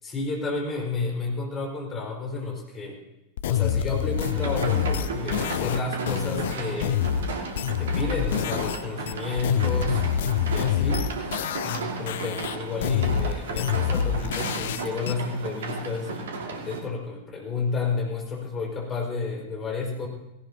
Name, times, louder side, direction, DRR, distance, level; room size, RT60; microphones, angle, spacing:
voice 1, 0.0-3.0 3.4-7.0 7.8-10.1 10.5-11.1 11.6-20.1, left 3 dB, 25° left, -1 dB, 4.8 m, -31 dB
sound 1, 3.4-8.8 9.1-11.8 12.1-15.1, left 9 dB, 55° left, 0.6 m, -26 dB
sound 2, 4.2-16.8, right 4 dB, 60° right, 1.9 m, -34 dB
17.5 x 17.5 x 2.8 m, 0.99 s
figure-of-eight pair, 90°, 0 cm